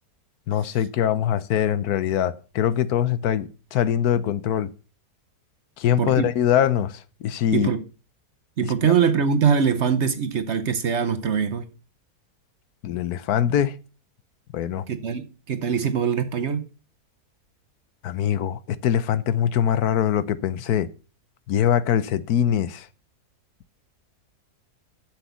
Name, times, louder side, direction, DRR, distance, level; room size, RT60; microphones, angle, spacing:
voice 1, 0.5-4.7 5.8-7.7 8.8-8.9 12.8-13.7 14.5-14.8 18.0-20.9 21.5-22.9, left 10 dB, 75° left, 1.2 m, -23 dB
voice 2, 7.5-7.8 8.6-11.7 14.9-16.7, right 7 dB, 55° right, 0.9 m, -23 dB
7.5 x 7.1 x 6.8 m
omnidirectional pair, 1.7 m